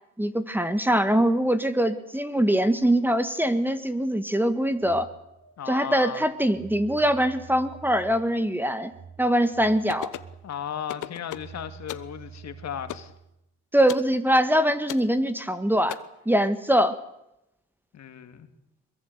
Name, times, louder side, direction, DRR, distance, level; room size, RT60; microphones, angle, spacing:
voice 1, 0.2-5.1 5.7-8.9 9.2-10.1 13.7-16.0 16.2-16.9, equal, 5° right, 11 dB, 1.6 m, -23 dB
Telephone, 4.6-13.2, right 6 dB, 90° right, 6.8 m, -47 dB
voice 2, 5.6-6.2 10.4-13.1 17.9-18.5, left 9 dB, 60° left, 9 dB, 2.4 m, -35 dB
sound 1, 9.9-10.3 10.9-11.5 11.9-12.1 12.9-13.1 13.9-14.1 14.9-15.1 15.9-16.0, left 14 dB, 80° left, 1.1 m, -36 dB
22.5 x 22.0 x 8.1 m, 0.85 s
cardioid pair, 90°, 30 cm